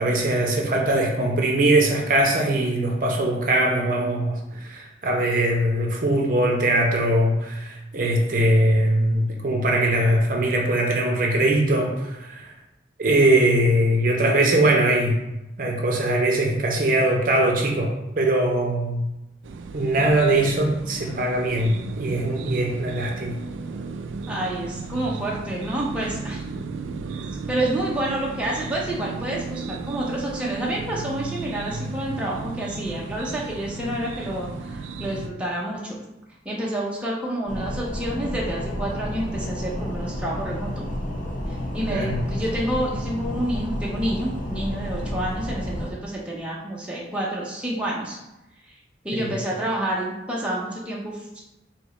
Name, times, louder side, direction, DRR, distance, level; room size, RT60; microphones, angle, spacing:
voice 1, 0.0-12.5 13.0-15.2 15.6-19.0 19.7-23.3 41.9-42.2 49.1-49.3, right 1 dB, 45° right, 0 dB, 0.6 m, -21 dB
sound 1, 19.4-35.3, right 4 dB, 85° right, 0.3 m, -35 dB
voice 2, 24.3-26.4 27.5-36.0 36.4-40.9 41.5-48.2 49.0-51.4, right 1 dB, 5° right, -5 dB, 0.6 m, -29 dB
sound 2, 37.5-45.9, left 1 dB, 45° left, 0.7 m, -30 dB
3.5 x 2.8 x 4.1 m, 0.94 s
head